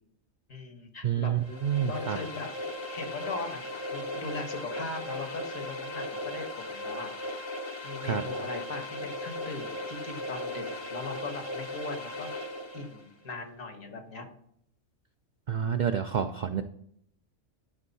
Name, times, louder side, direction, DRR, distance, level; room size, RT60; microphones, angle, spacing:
voice 1, 0.5-1.4 1.8-2.5 2.9-7.4 7.8-12.3 12.7-14.3, left 3 dB, 80° left, 5 dB, 1.8 m, -39 dB
voice 2, 1.0-2.2 8.0-8.2 15.5-16.6, right 8 dB, 80° right, 8 dB, 0.4 m, -28 dB
sound 1, 1.4-13.0, left 1 dB, 30° left, 0.5 m, -37 dB
11.5 x 4.5 x 4.1 m, 0.69 s
omnidirectional pair, 1.4 m